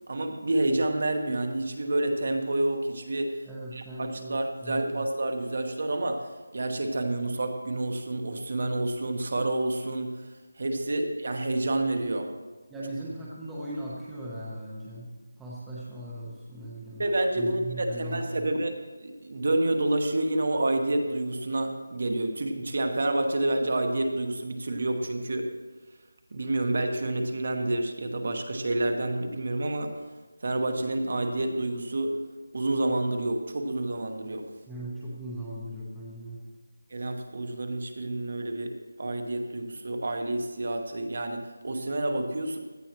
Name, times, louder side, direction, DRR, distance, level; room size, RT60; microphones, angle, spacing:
voice 1, 0.1-3.4 3.7-12.3 17.0-25.5 26.3-30.0 30.4-32.2 32.5-34.5 36.9-42.6, right 2 dB, 40° right, 5 dB, 1.2 m, -29 dB
voice 2, 3.4-5.1 12.7-17.0 17.3-18.5 34.7-36.4, right 1 dB, 5° right, -8 dB, 0.9 m, -38 dB
16.5 x 11.5 x 3.0 m, 1.3 s
figure-of-eight pair, 180°, 0 cm